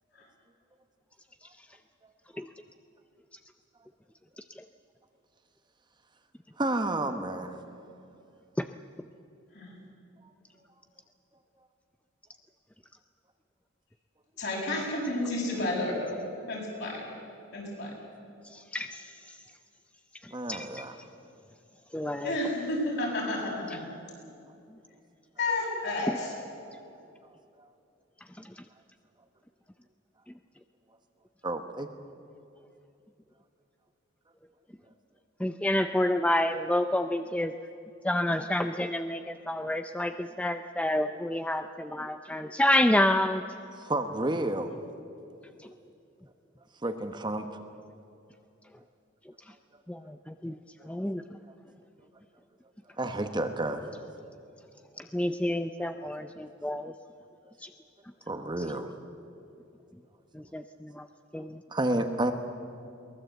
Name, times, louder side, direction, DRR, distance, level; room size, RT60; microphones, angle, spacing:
voice 1, 6.6-7.6 20.3-20.9 31.4-31.9 43.8-44.7 46.8-47.5 50.8-50.9 53.0-53.8 58.3-58.9 61.7-62.3, right 1 dB, 20° right, 6 dB, 1.1 m, -30 dB
voice 2, 14.4-16.2 16.5-17.1 17.5-17.9 22.2-23.8 25.4-26.3, left 2 dB, 55° left, -2 dB, 7.3 m, -31 dB
voice 3, 18.4-19.4 20.2-20.9 21.9-22.3 26.1-26.2 28.4-28.5 35.4-37.5 38.0-43.4 45.6-45.7 49.9-50.6 50.8-51.2 55.0-56.9 57.6-57.7 60.3-61.1 61.3-61.6, left 1 dB, 5° left, 8 dB, 0.5 m, -29 dB
22.5 x 19.5 x 8.1 m, 2.6 s
head